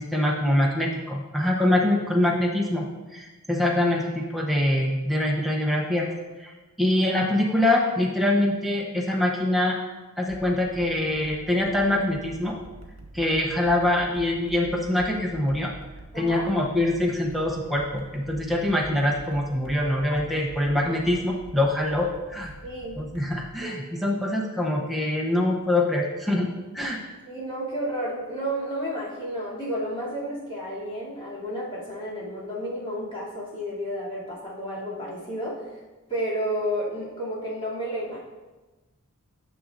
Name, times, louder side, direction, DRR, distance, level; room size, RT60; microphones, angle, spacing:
voice 1, 0.0-2.9 3.1-6.1 6.4-6.5 6.8-9.8 10.2-12.6 13.1-15.7 16.1-22.5 23.0-26.5 26.7-27.0, left 1 dB, ahead, -2 dB, 0.6 m, -24 dB
sound 1, 10.3-23.4, right 2 dB, 65° right, 1.1 m, -45 dB
voice 2, 22.6-23.0 23.6-23.8 27.2-35.7 36.1-38.2, equal, 25° left, -9 dB, 2.6 m, -31 dB
10.0 x 6.2 x 2.5 m, 1.2 s
head